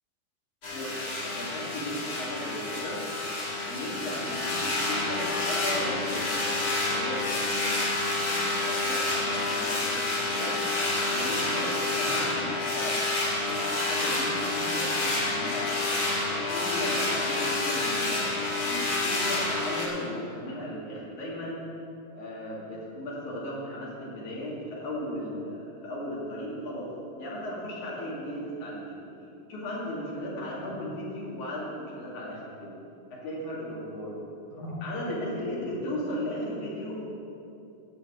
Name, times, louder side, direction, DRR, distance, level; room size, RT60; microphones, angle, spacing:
sound 1, 0.6-19.9, left 2 dB, 35° left, 1.7 m, -29 dB
voice 1, 1.3-3.1 3.6-10.8 11.1-13.0 13.3-21.6 22.2-29.1 29.5-32.8 33.1-34.1 34.6-37.1, equal, 60° left, -5 dB, 3.7 m, -36 dB
14.5 x 5.2 x 7.9 m, 2.7 s
omnidirectional pair, 4.1 m